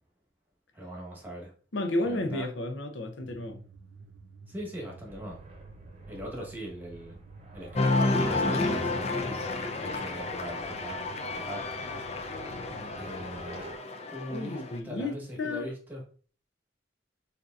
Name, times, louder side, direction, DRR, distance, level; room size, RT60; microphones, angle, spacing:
voice 1, 0.7-1.5 2.0-2.5 4.5-5.4 6.1-7.2 7.5-9.4 9.8-11.6 13.0-13.7 14.1-16.0, equal, 10° right, 1.2 m, -40 dB
voice 2, 1.7-3.6 12.5-12.9 14.3-15.7, left 2 dB, 75° left, 0.7 m, -33 dB
sound 1, 3.2-13.6, right 4 dB, 75° right, 0.5 m, -51 dB
sound 2, 5.0-13.8, right 1 dB, 35° right, 0.9 m, -51 dB
Cheering, 7.7-14.8, left 2 dB, 35° left, 0.5 m, -31 dB
6.6 x 2.8 x 2.5 m
head